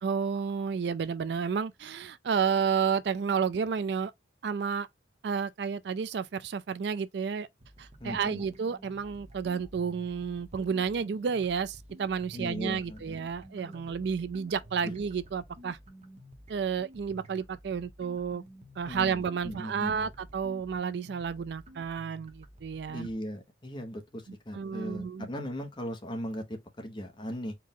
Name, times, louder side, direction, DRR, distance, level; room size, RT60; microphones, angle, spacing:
voice 1, 0.0-4.1 4.4-4.9 5.2-7.5 7.8-15.8 16.5-18.4 18.8-23.1 24.5-25.3, right 6 dB, 60° right, 0.4 m, -31 dB
sound 1, 7.6-23.1, right 1 dB, 35° right, 1.0 m, -51 dB
voice 2, 8.0-8.4 12.3-13.2 14.8-14.9 18.8-20.1 22.9-27.6, equal, 25° left, 1.0 m, -38 dB
4.5 x 2.4 x 3.6 m
head